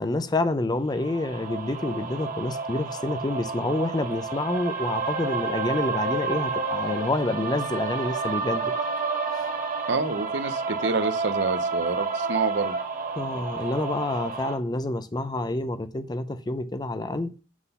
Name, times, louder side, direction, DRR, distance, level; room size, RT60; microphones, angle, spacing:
voice 1, 0.0-8.7 13.2-17.3, left 2 dB, 20° left, 0.5 m, -28 dB
sound 1, 1.0-14.5, right 4 dB, 45° right, 1.2 m, -30 dB
voice 2, 9.9-12.8, right 4 dB, 65° right, 0.7 m, -27 dB
6.0 x 3.8 x 5.4 m
head